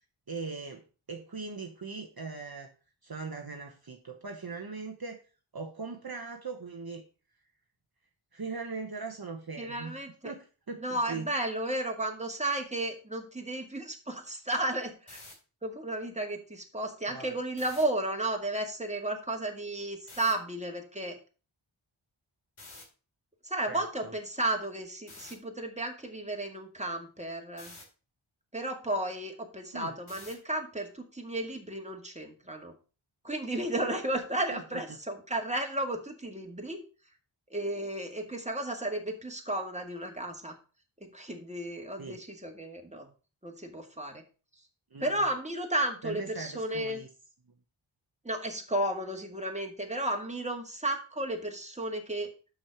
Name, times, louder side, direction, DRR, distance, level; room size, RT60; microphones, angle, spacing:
voice 1, 0.3-2.7 3.0-5.2 5.5-7.0 8.3-10.0 10.2-11.3 17.1-17.3 23.7-24.1 29.7-30.0 34.5-35.0 42.0-42.2 44.9-45.3 46.0-47.1, right 4 dB, 50° right, 4 dB, 1.1 m, -40 dB
voice 2, 9.6-10.3 10.8-15.2 15.6-21.2 23.4-27.7 28.5-32.7 33.2-36.8 37.5-40.5 41.1-43.1 43.4-44.2 45.0-47.0 48.2-52.3, right 1 dB, 15° right, 3 dB, 1.9 m, -33 dB
sound 1, 15.0-15.3 17.5-17.8 20.1-20.3 22.6-22.8 25.1-25.3 27.6-27.8 30.1-30.5, left 2 dB, 80° left, 2.6 m, -48 dB
6.4 x 6.1 x 5.8 m, 0.35 s
wide cardioid pair, 55°, 49 cm